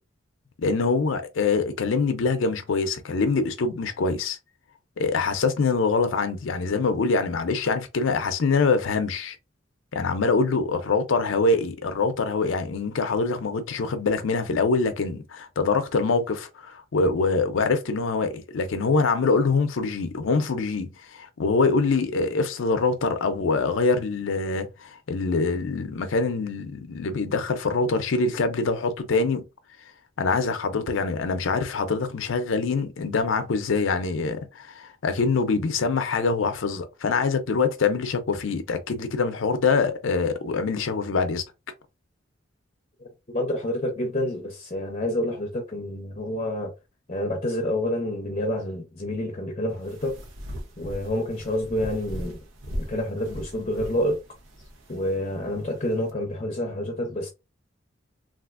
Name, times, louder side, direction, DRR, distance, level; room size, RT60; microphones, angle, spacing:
voice 1, 0.6-4.4 5.0-9.4 9.9-29.4 30.2-41.4, left 4 dB, 80° left, 0.5 m, -24 dB
voice 2, 43.0-46.7 47.1-50.2 50.8-52.4 52.8-54.2 54.9-57.3, left 1 dB, 35° left, 0.6 m, -28 dB
sound 1, 49.7-56.1, equal, 85° right, 0.8 m, -39 dB
3.3 x 2.4 x 2.4 m
head